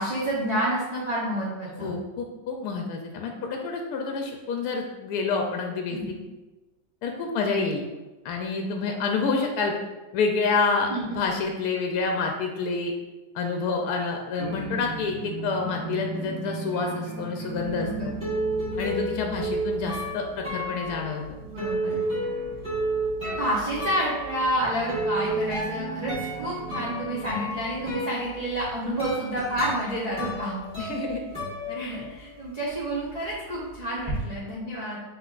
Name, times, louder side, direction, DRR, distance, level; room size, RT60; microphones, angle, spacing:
voice 1, 0.0-1.9 5.9-6.1 10.9-11.0 17.7-18.1 21.5-22.0 23.2-30.6 31.7-35.0, right 1 dB, 50° right, -7 dB, 0.5 m, -29 dB
voice 2, 1.8-6.0 7.0-7.8 8.2-9.7 10.1-10.9 11.1-12.9 13.3-18.1 18.8-21.4 30.8-31.2, left 4 dB, 70° left, 2 dB, 1.0 m, -28 dB
sound 1, 14.4-28.0, right 5 dB, 75° right, 0.7 m, -39 dB
sound 2, 17.6-32.4 32.7-34.2, right 1 dB, 5° left, 1.1 m, -32 dB
5.8 x 3.3 x 2.4 m, 1.1 s
omnidirectional pair, 1.9 m